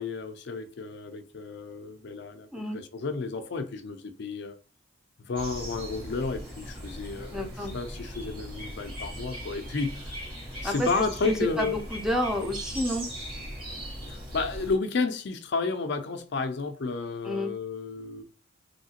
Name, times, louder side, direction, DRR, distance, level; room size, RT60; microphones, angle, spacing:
voice 1, 0.0-2.5 2.7-4.6 5.2-10.2 10.6-11.8 14.1-18.2, left 4 dB, 60° left, 0.5 m, -32 dB
sound 1, 5.4-14.8, equal, 25° right, 1.5 m, -39 dB
voice 2, 7.3-7.7 10.6-13.1 17.2-17.5, equal, 5° right, 0.6 m, -30 dB
3.1 x 2.7 x 2.8 m
head